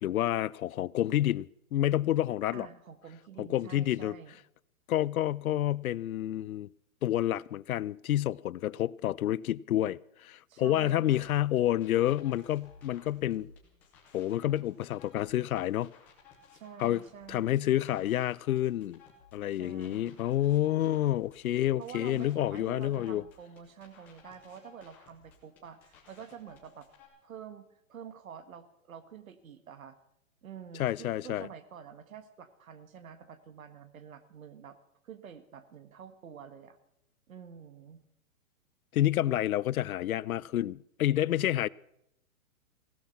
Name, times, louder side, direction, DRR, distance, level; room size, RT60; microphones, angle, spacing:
voice 1, 0.0-2.7 3.4-4.2 4.9-6.7 7.0-13.5 14.1-15.9 16.8-17.0 17.3-19.0 19.3-23.2 30.8-31.5 38.9-41.7, left 13 dB, 80° left, 0.6 m, -29 dB
voice 2, 2.5-4.4 10.5-11.3 16.5-17.7 19.5-20.2 21.8-26.9 27.2-30.0 30.4-34.8 35.0-36.8 37.3-38.0, right 7 dB, 70° right, 1.6 m, -48 dB
sound 1, 11.1-27.1, left 5 dB, 5° left, 0.5 m, -58 dB
16.5 x 12.0 x 5.9 m
hypercardioid pair, 160°, 42 cm